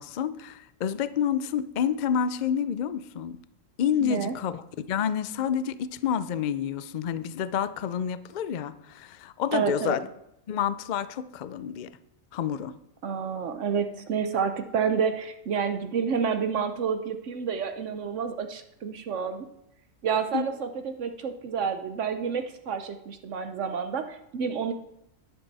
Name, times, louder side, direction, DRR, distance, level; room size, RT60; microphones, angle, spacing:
voice 1, 0.0-3.4 3.8-4.6 4.9-10.1 10.5-11.9 12.3-12.7 20.3-20.5, left 8 dB, 65° left, 15 dB, 0.4 m, -29 dB
voice 2, 4.0-4.3 9.5-10.0 13.0-19.5 20.0-24.7, right 6 dB, 70° right, 8 dB, 1.0 m, -29 dB
11.0 x 10.5 x 4.0 m, 0.81 s
omnidirectional pair, 1.4 m